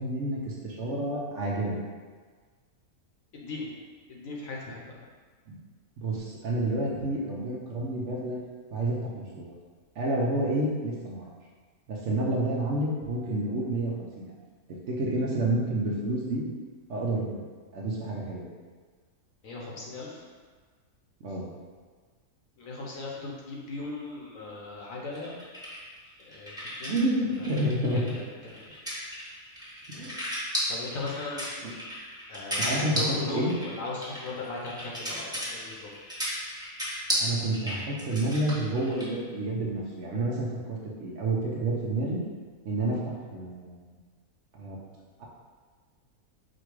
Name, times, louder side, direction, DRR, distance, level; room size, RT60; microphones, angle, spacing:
voice 1, 0.0-1.8 5.5-5.6 6.0-8.4 8.7-9.5 10.0-11.2 11.9-14.3 14.9-16.4 16.9-17.5 17.7-18.5 21.2-21.5 26.9-28.1 30.0-30.2 31.6-31.7 32.6-33.5 37.2-42.2 42.6-43.9 44.5-44.8 45.2-45.3, right 1 dB, 60° right, -3 dB, 0.9 m, -29 dB
voice 2, 3.3-3.7 4.1-5.0 19.4-20.2 22.6-25.3 26.2-26.5 26.8-27.0 27.4-27.7 27.9-28.0 28.4-28.6 30.7-31.5 32.3-35.9, left 3 dB, 65° left, -3 dB, 1.2 m, -37 dB
sound 1, 25.1-27.0 27.3-39.1, equal, 5° right, 0.9 m, -34 dB
5.1 x 2.3 x 4.6 m, 1.5 s
omnidirectional pair, 1.6 m